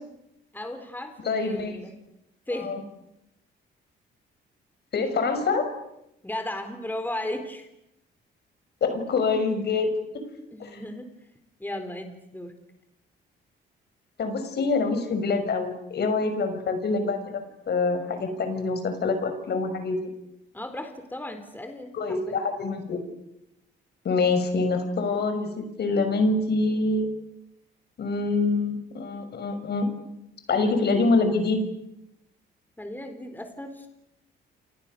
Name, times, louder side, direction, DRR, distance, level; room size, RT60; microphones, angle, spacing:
voice 1, 0.5-1.9 2.5-2.7 6.2-7.7 10.5-11.1 11.6-12.5 20.5-22.4 32.8-33.9, left 1 dB, 10° left, 7 dB, 3.9 m, -35 dB
voice 2, 1.2-1.8 2.6-2.8 4.9-5.7 8.8-9.9 10.6-10.7 14.2-20.1 21.9-23.0 24.0-27.1 28.0-29.9 30.5-31.6, left 3 dB, 55° left, 8 dB, 6.3 m, -25 dB
29.5 x 27.5 x 6.8 m, 0.84 s
cardioid pair, 90°, 20 cm